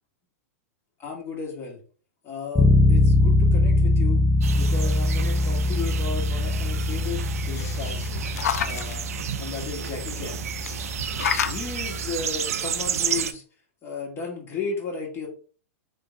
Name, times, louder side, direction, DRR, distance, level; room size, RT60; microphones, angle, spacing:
voice 1, 1.0-1.8 2.2-4.2 4.6-8.1 8.6-9.1 9.4-10.4 11.5-13.4 13.8-15.3, left 5 dB, 30° left, -1 dB, 2.1 m, -34 dB
Bass guitar, 2.6-12.3, left 2 dB, 5° left, 0.5 m, -23 dB
sound 1, 4.4-13.3, right 9 dB, 80° right, 0.5 m, -32 dB
sound 2, 7.2-9.0 10.6-11.6 12.9-13.0 13.3-13.4, left 8 dB, 85° left, 0.4 m, -30 dB
3.7 x 3.6 x 3.7 m, 0.40 s
hypercardioid pair, 115°, 8 cm